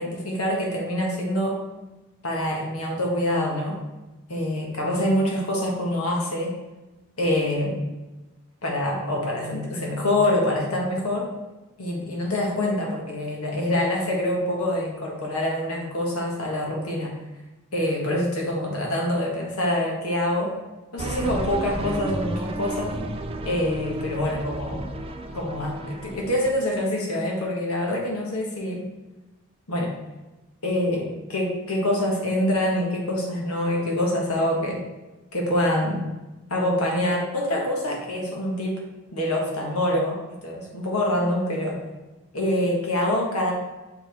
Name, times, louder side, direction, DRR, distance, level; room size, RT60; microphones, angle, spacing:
voice 1, 0.0-1.6 2.2-3.8 4.3-6.5 7.2-7.8 8.6-11.3 11.8-17.1 17.7-20.6 20.9-22.9 23.4-24.9 25.3-28.9 29.7-29.9 30.6-34.8 35.3-36.0 36.5-38.8 39.1-41.8 42.3-43.5, left 1 dB, 85° left, -1 dB, 1.5 m, -25 dB
sound 1, 21.0-26.5, right 1 dB, 25° right, 0.4 m, -32 dB
6.1 x 4.8 x 3.5 m, 1.1 s
head